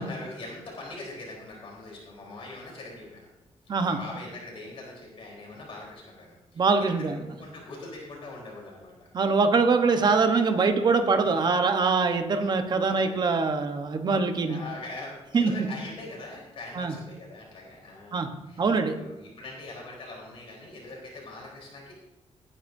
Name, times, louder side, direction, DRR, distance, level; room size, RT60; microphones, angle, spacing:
voice 1, 0.0-3.3 3.7-6.6 7.0-9.1 11.0-11.6 12.9-13.2 14.5-18.6 18.9-21.9, left 2 dB, 55° left, -3 dB, 3.7 m, -42 dB
voice 2, 6.6-7.2 9.1-14.6 15.3-15.7 16.7-16.9 18.1-18.3 18.6-19.0, right 4 dB, 40° right, 7 dB, 0.9 m, -23 dB
17.5 x 9.9 x 2.6 m, 0.99 s
wide cardioid pair, 170°, 12 cm